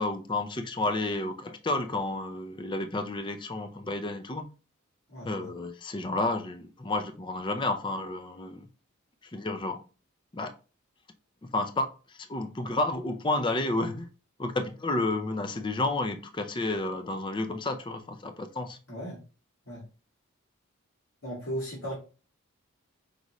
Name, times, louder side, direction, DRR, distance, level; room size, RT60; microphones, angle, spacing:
voice 1, 0.0-4.4 5.2-8.7 9.2-9.8 10.3-10.5 11.4-14.1 14.4-18.8, left 2 dB, 20° left, 0.4 m, -31 dB
voice 2, 5.1-5.5 18.9-19.2 19.7-19.8 21.2-21.9, equal, 90° left, 1.8 m, -36 dB
5.3 x 2.5 x 3.0 m
head